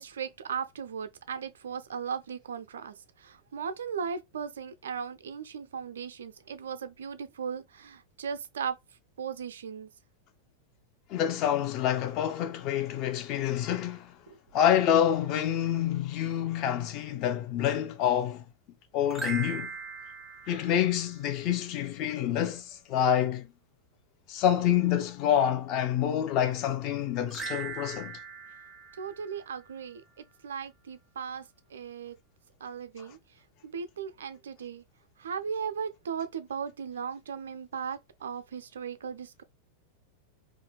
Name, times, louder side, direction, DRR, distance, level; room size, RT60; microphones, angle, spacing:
voice 1, 0.0-8.8 9.2-9.9 14.3-14.4 29.0-30.0 30.4-31.4 31.7-32.2 32.6-33.2 33.6-34.8 35.2-39.4, right 7 dB, 65° right, 0.4 m, -37 dB
voice 2, 11.1-14.1 14.5-18.4 18.9-19.7 20.5-23.5 24.3-28.2, left 10 dB, 40° left, 0.5 m, -27 dB
sound 1, 19.1-21.5 27.3-29.9, right 5 dB, 10° right, 0.5 m, -40 dB
2.7 x 2.5 x 3.0 m
figure-of-eight pair, 90°, 0 cm